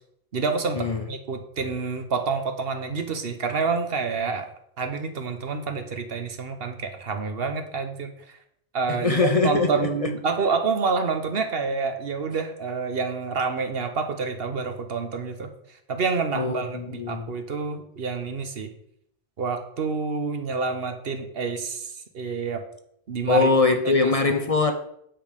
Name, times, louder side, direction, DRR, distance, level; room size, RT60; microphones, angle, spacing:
voice 1, 0.3-4.5 4.8-8.4 8.7-15.5 15.9-18.7 19.4-22.6 23.1-23.5 23.8-24.1, right 4 dB, 65° right, 1.2 m, -28 dB
voice 2, 8.9-10.1 16.3-17.3 23.3-24.7, left 3 dB, 40° left, 0.7 m, -22 dB
9.0 x 5.2 x 5.2 m
omnidirectional pair, 1.1 m